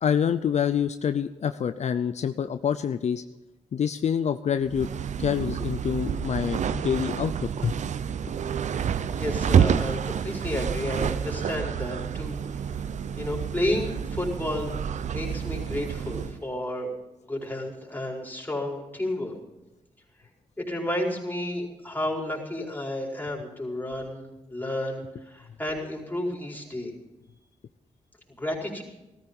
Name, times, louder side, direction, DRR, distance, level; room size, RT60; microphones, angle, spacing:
voice 1, 0.0-3.2 3.7-4.9 5.2-7.3 7.6-7.8, left 8 dB, 65° left, 11 dB, 0.5 m, -26 dB
sound 1, 4.7-16.4, right 8 dB, 75° right, 0.6 m, -28 dB
voice 2, 9.2-12.4 13.2-14.7 15.1-16.9 17.2-19.3 20.6-26.9 28.4-28.8, left 1 dB, 15° left, -2 dB, 4.7 m, -31 dB
14.5 x 14.0 x 5.4 m, 0.96 s
cardioid pair, 50°, 12 cm